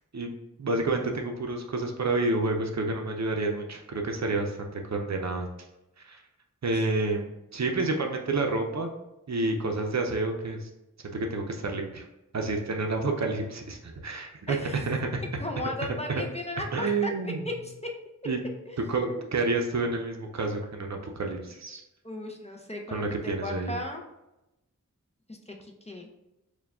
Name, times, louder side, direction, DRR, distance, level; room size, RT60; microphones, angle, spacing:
voice 1, 0.6-5.5 6.0-6.2 6.6-8.9 9.3-10.7 11.1-12.1 12.3-15.2 16.1-16.2 16.7-17.4 18.3-18.4 18.9-21.8 22.9-23.7, right 3 dB, 55° right, 3 dB, 0.6 m, -29 dB
voice 2, 14.5-14.8 15.4-17.7 18.7-19.2 22.0-24.0 25.3-26.1, left 1 dB, 20° left, 1 dB, 0.5 m, -36 dB
4.6 x 2.2 x 3.5 m, 0.93 s
wide cardioid pair, 70°, 32 cm